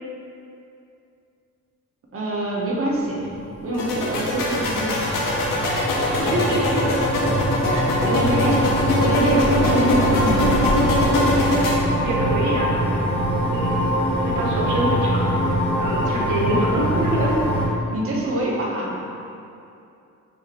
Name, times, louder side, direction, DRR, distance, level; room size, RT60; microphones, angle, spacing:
voice 1, 2.1-3.3 3.6-5.1 8.0-8.6 9.0-11.0 17.9-19.0, right 1 dB, 45° right, -3 dB, 0.8 m, -25 dB
sound 1, 3.3-17.7, equal, 15° right, 1.4 m, -23 dB
sound 2, 3.7-11.7, left 1 dB, 90° left, 0.7 m, -22 dB
voice 2, 4.1-4.7 5.7-6.8 7.1-7.2 7.6-8.3 8.7-8.8 12.0-12.8 13.5-13.9 14.2-15.3 15.8-17.4, right 1 dB, 70° right, -3 dB, 0.9 m, -26 dB
5.6 x 2.6 x 2.9 m, 2.6 s
cardioid pair, 95°, 32 cm